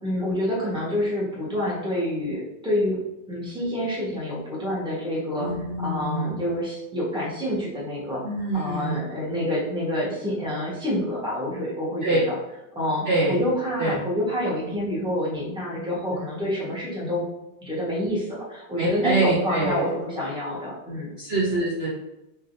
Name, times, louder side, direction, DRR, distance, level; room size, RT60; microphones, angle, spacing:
voice 1, 0.0-3.0 3.3-5.5 5.8-8.2 8.5-12.3 12.7-17.2 17.6-21.1, left 1 dB, 5° right, -7 dB, 0.9 m, -27 dB
voice 2, 5.4-6.5 8.2-9.0 12.0-12.2 13.0-13.4 13.8-14.0 16.1-16.2 18.8-19.8 21.2-21.9, right 2 dB, 65° right, -5 dB, 0.6 m, -25 dB
3.8 x 3.6 x 2.6 m, 0.94 s
omnidirectional pair, 2.0 m